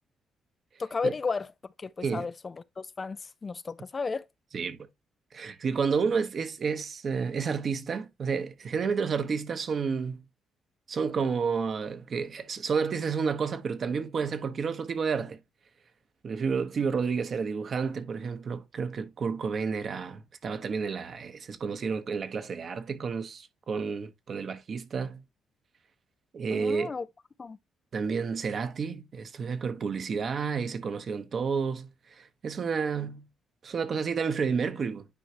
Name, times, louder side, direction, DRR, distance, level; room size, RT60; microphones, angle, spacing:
voice 1, 0.8-1.5 1.8-4.3 26.5-27.1 27.4-27.6, left 4 dB, 35° left, 0.4 m, -33 dB
voice 2, 5.3-10.2 10.9-15.4 16.2-25.2 26.3-26.9 27.9-33.2 33.6-35.1, right 5 dB, 50° right, 1.1 m, -30 dB
9.9 x 4.7 x 2.9 m
cardioid pair, 90°, 0 cm